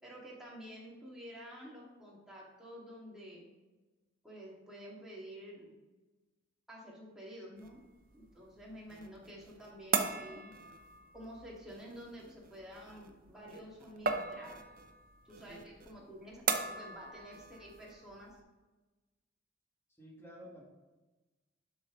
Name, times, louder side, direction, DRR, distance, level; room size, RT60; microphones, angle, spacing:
voice 1, 0.0-3.5 4.2-5.7 6.7-7.8 8.1-10.5 11.1-14.6 15.3-16.4 16.7-18.3, equal, 5° right, -6 dB, 2.1 m, -50 dB
sound 1, 7.6-18.4, right 5 dB, 45° right, 0.6 m, -40 dB
voice 2, 20.0-20.6, equal, 15° left, -3 dB, 1.7 m, -52 dB
7.7 x 5.9 x 3.8 m, 1.2 s
head